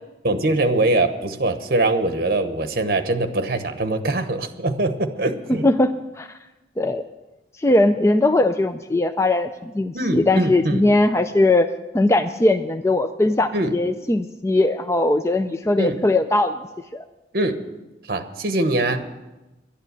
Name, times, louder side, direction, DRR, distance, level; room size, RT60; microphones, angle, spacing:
voice 1, 0.2-5.6 9.9-10.9 13.5-13.7 15.8-16.0 17.3-17.6 18.1-19.0, right 2 dB, 55° right, 8 dB, 1.0 m, -22 dB
voice 2, 5.6-6.3 6.8-7.0 7.6-16.6 16.9-17.0, left 2 dB, 15° left, 8 dB, 0.4 m, -20 dB
11.5 x 9.9 x 8.1 m, 1.1 s
head